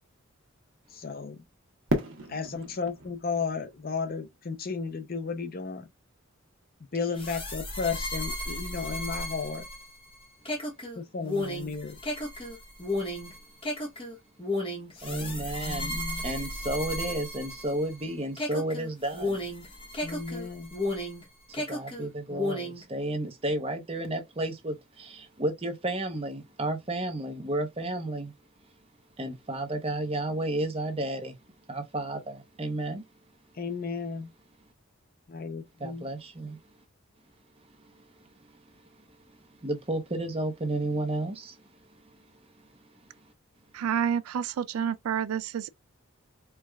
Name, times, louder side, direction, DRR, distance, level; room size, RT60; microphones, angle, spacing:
voice 1, 0.9-1.5 2.3-5.9 6.9-9.7 11.0-12.0 15.1-16.3 20.0-20.7 33.6-34.3 35.3-36.1, left 5 dB, 45° left, 0.5 m, -34 dB
Fireworks, 1.9-4.9, right 1 dB, 65° right, 1.0 m, -34 dB
sound 1, 7.2-18.0 18.4-21.2 21.5-22.8, left 1 dB, 25° left, 1.0 m, -34 dB
voice 2, 15.0-19.4 21.7-28.3 29.2-31.4 31.7-33.1 35.8-36.6 37.8-38.1 38.4-38.6 39.6-41.6, right 1 dB, 25° right, 0.7 m, -32 dB
voice 3, 43.7-45.7, right 8 dB, 85° right, 0.3 m, -29 dB
4.6 x 2.3 x 2.3 m
head